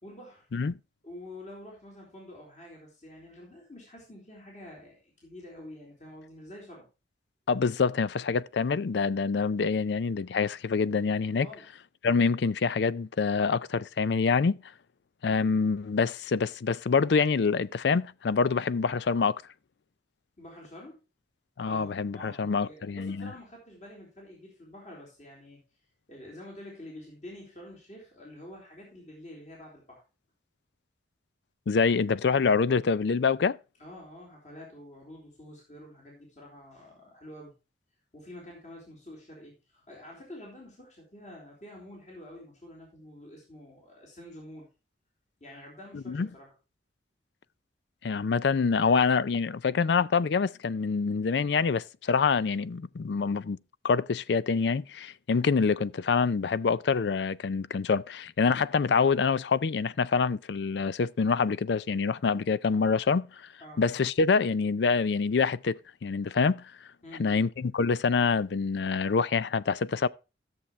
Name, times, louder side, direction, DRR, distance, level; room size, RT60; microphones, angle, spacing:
voice 1, 0.0-0.5 1.0-6.8 11.4-11.7 20.4-21.0 21.7-25.6 26.1-30.0 33.8-37.5 38.1-44.7 45.4-46.5 63.6-63.8 67.0-67.5, left 1 dB, 40° left, 3.8 m, -47 dB
voice 2, 7.5-11.5 12.0-14.6 15.2-19.4 21.6-23.3 31.7-33.6 45.9-46.3 48.0-53.6 53.8-63.3 63.8-66.7 67.2-70.1, left 5 dB, 65° left, 0.4 m, -26 dB
14.0 x 7.3 x 3.1 m
head